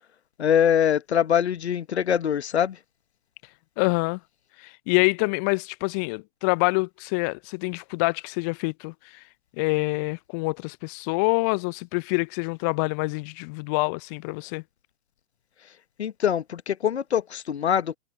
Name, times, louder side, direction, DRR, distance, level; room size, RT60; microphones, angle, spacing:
voice 1, 0.4-2.8 16.0-18.0, left 9 dB, 60° left, 1.3 m, -23 dB
voice 2, 3.8-4.2 4.6-9.2 9.6-14.6, left 30 dB, 15° left, 0.4 m, -26 dB
figure-of-eight pair, 115°, 36 cm